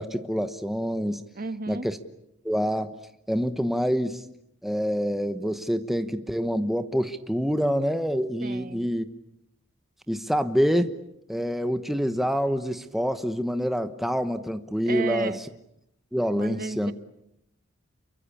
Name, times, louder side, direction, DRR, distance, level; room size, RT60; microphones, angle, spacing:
voice 1, 0.0-1.2 1.7-2.0 2.4-2.9 3.3-4.2 4.6-9.1 10.1-10.9 11.3-15.3 16.1-16.9, equal, ahead, 8 dB, 1.1 m, -26 dB
voice 2, 1.3-1.9 8.4-8.9 14.9-15.4 16.3-16.9, right 3 dB, 45° right, 10 dB, 1.5 m, -33 dB
29.5 x 24.0 x 8.5 m, 0.79 s
head